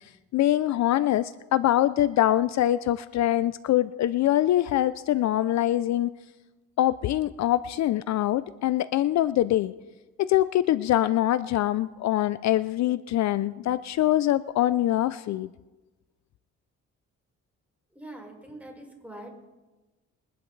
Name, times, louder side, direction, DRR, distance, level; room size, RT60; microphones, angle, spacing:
voice 1, 0.3-6.1 6.8-9.7 10.2-15.5, left 13 dB, 65° left, 15 dB, 0.5 m, -24 dB
voice 2, 17.9-19.5, right 1 dB, 5° right, -1 dB, 4.6 m, -43 dB
22.5 x 11.0 x 3.2 m, 1.2 s
cardioid pair, 90°, 30 cm